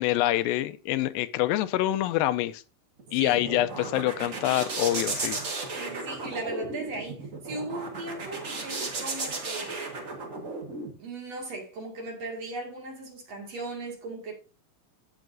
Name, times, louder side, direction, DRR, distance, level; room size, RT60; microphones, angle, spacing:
voice 1, 0.0-2.6 3.1-5.4, left 14 dB, 85° left, 2.3 m, -26 dB
sound 1, 3.0-10.9, right 3 dB, 70° right, 0.7 m, -35 dB
voice 2, 5.7-9.9 11.0-14.3, right 2 dB, 50° right, 3.0 m, -37 dB
15.5 x 5.8 x 2.6 m
omnidirectional pair, 4.1 m